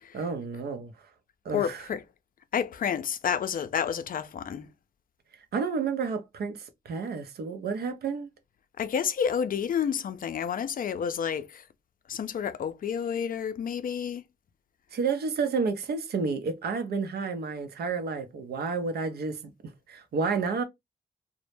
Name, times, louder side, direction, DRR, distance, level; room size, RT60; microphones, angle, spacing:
voice 1, 0.1-0.9 1.4-1.9 5.5-8.3 14.9-20.6, right 5 dB, 70° right, 0.6 m, -30 dB
voice 2, 1.5-2.0 2.5-4.7 8.8-11.6 12.1-14.2, left 7 dB, 55° left, 0.4 m, -30 dB
2.0 x 2.0 x 3.0 m
cardioid pair, 55°, 17 cm